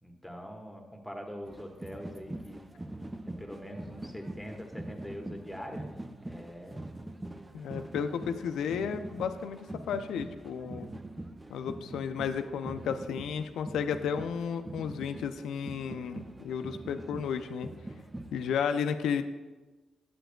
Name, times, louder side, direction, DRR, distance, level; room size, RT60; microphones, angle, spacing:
voice 1, 0.0-2.6 3.4-5.9 6.2-6.8, equal, 5° left, 2 dB, 1.3 m, -43 dB
sound 1, 1.5-18.6, right 1 dB, 20° right, 0.5 m, -43 dB
voice 2, 7.5-10.9 11.5-17.7 18.3-19.2, left 7 dB, 75° left, 9 dB, 0.4 m, -33 dB
7.9 x 7.7 x 2.2 m, 1.2 s
hypercardioid pair, 45°, 0 cm